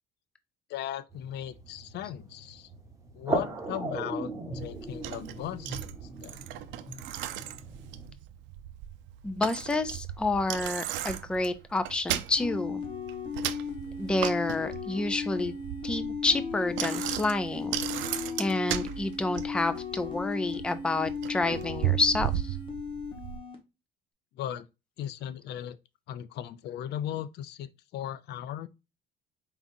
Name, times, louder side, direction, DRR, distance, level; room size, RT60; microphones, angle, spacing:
voice 1, 0.7-2.7 3.1-6.4 24.4-24.7 25.0-25.8 26.1-28.7, left 11 dB, 60° left, 0.5 m, -37 dB
sound 1, 1.1-8.1, right 2 dB, 15° right, 1.2 m, -38 dB
Bicycle, 4.5-23.4, right 13 dB, 75° right, 0.5 m, -36 dB
voice 2, 9.2-12.8 14.0-15.5 15.8-17.7 18.4-22.6, left 2 dB, 5° left, 0.4 m, -29 dB
sound 2, 12.4-23.6, left 5 dB, 25° left, 1.4 m, -36 dB
4.7 x 3.7 x 2.6 m
cardioid pair, 135°, 20 cm